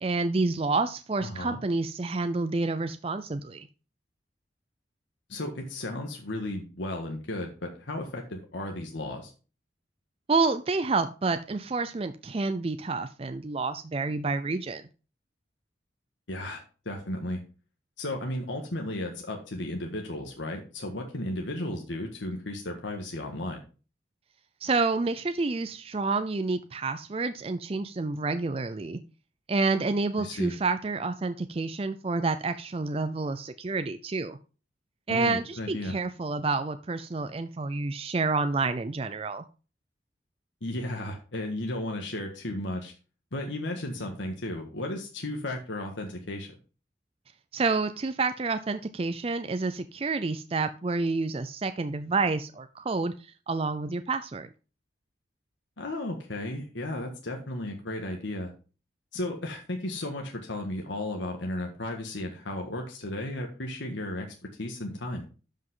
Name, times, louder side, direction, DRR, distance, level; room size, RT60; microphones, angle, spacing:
voice 1, 0.0-3.7 10.3-14.8 24.6-29.0 29.5-34.4 35.1-39.4 47.5-54.5, right 3 dB, 30° right, 10 dB, 0.4 m, -29 dB
voice 2, 1.2-1.6 5.3-9.3 16.3-17.4 18.0-23.6 30.2-30.5 35.1-36.0 40.6-42.9 43.3-46.6 55.8-58.5 59.1-64.3 64.6-65.2, left 1 dB, 85° left, 2 dB, 1.6 m, -34 dB
12.0 x 5.5 x 3.7 m, 0.34 s
head